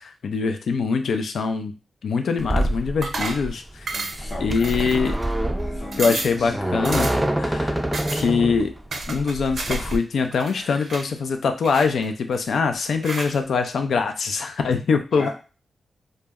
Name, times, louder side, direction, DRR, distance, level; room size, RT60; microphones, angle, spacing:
voice 1, 0.0-1.7 2.0-3.9 4.4-5.2 6.0-7.8 8.1-8.7 9.1-15.3, left 5 dB, 80° left, 7 dB, 0.4 m, -23 dB
sound 1, 2.4-10.0, right 1 dB, 10° right, 0.4 m, -26 dB
sound 2, 3.0-3.5 3.9-4.3 4.6-5.2 5.6-5.7 5.9-6.4 6.8-7.3 7.9-8.3 8.9-10.0 10.2-11.1 11.6-12.4 13.0-13.4, right 3 dB, 65° right, 0.5 m, -31 dB
voice 2, 3.9-5.2 5.6-6.6 10.6-10.9 15.2-15.3, left 2 dB, 60° left, -6 dB, 0.7 m, -37 dB
Bowed string instrument, 4.2-9.2, equal, 20° left, 0.7 m, -42 dB
2.1 x 2.0 x 3.4 m, 0.33 s
cardioid pair, 55°, 0 cm